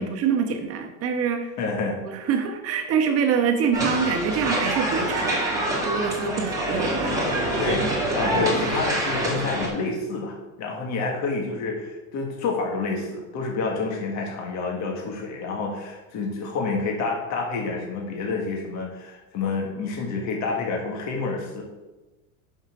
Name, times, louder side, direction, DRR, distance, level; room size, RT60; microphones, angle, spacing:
voice 1, 0.0-1.5 2.0-7.9 8.2-8.7, right 6 dB, 35° right, 5 dB, 1.2 m, -26 dB
voice 2, 1.6-2.0 7.6-21.6, left 4 dB, 40° left, 0 dB, 1.8 m, -28 dB
sound 1, 3.7-9.7, right 1 dB, 10° right, 2.1 m, -26 dB
5.9 x 5.6 x 5.9 m, 1.1 s
supercardioid pair, 130°, 42 cm